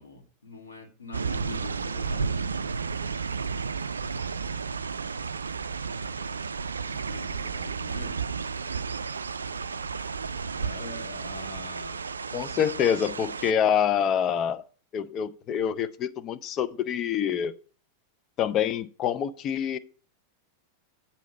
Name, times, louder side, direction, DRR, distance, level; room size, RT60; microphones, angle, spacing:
voice 1, 0.0-2.6 6.8-8.1 10.5-12.0, left 3 dB, 75° left, 2.3 m, -43 dB
sound 1, 1.1-13.5, right 5 dB, 75° right, 0.3 m, -32 dB
voice 2, 12.3-14.6 14.9-17.5 18.4-19.8, left 8 dB, 30° left, 0.5 m, -26 dB
8.2 x 4.3 x 7.0 m
figure-of-eight pair, 90°, 0 cm